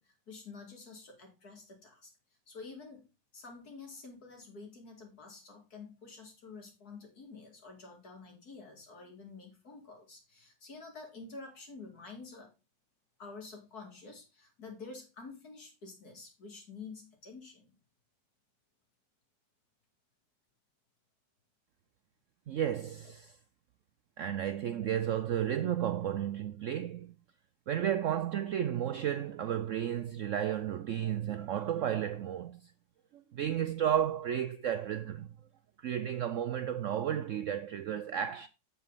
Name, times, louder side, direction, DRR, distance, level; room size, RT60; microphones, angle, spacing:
voice 1, 0.0-2.1 2.5-3.1 3.3-12.5 13.2-17.7 24.8-24.9, left 4 dB, 55° left, 3.1 m, -49 dB
voice 2, 22.5-23.3 24.2-27.1 27.7-32.7 33.1-35.3 35.8-38.5, right 10 dB, 90° right, 0.6 m, -33 dB
7.6 x 7.4 x 4.0 m
omnidirectional pair, 2.0 m